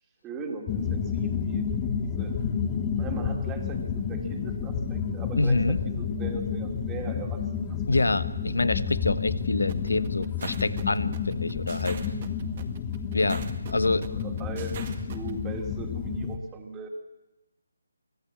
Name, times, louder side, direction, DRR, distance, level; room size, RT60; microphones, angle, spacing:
voice 1, 0.2-1.7 2.0-2.4 2.9-7.8 13.8-16.9, right 3 dB, 15° right, 3 dB, 2.6 m, -39 dB
sound 1, 0.7-16.4, left 6 dB, 20° left, 1.5 m, -30 dB
voice 2, 5.4-5.8 7.9-12.0 13.1-14.1, left 2 dB, 85° left, 15 dB, 1.2 m, -26 dB
sound 2, 9.7-15.3, right 7 dB, 35° right, 1.9 m, -42 dB
24.0 x 14.5 x 8.7 m, 1.0 s
figure-of-eight pair, 160°, 0 cm